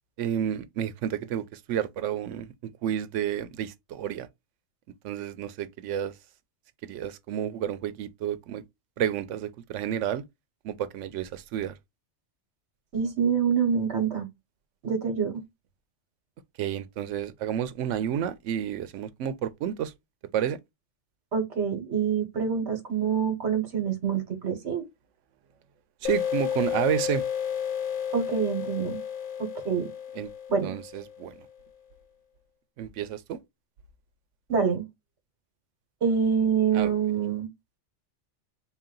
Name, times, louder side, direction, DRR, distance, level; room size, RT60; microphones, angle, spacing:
voice 1, 0.2-2.5 2.8-4.3 5.0-6.1 6.8-8.6 9.0-10.2 10.6-11.8 16.6-19.9 20.3-20.6 26.0-27.2 30.2-30.3 30.6-31.3 32.8-33.4 36.7-36.9, right 10 dB, 90° right, 0.9 m, -30 dB
voice 2, 12.9-14.3 14.8-15.4 21.3-24.8 28.1-29.0 29.4-29.9 30.5-30.8 34.5-34.8 36.0-37.5, right 7 dB, 70° right, 1.3 m, -26 dB
sound 1, 26.0-31.4, left 8 dB, 50° left, 0.8 m, -32 dB
4.0 x 2.3 x 3.7 m
omnidirectional pair, 1.2 m